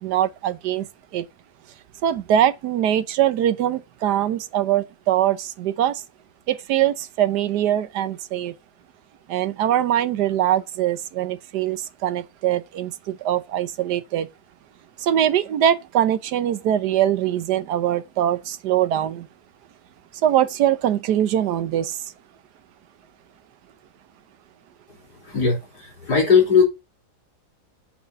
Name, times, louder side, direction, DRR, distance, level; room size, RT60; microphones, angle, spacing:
voice 1, 0.0-1.2 2.0-6.0 6.5-8.5 9.3-14.3 15.0-19.3 20.2-22.0, right 11 dB, 80° right, 1.3 m, -22 dB
voice 2, 25.2-26.6, left 5 dB, 75° left, 4.1 m, -18 dB
8.6 x 4.2 x 6.7 m
omnidirectional pair, 1.8 m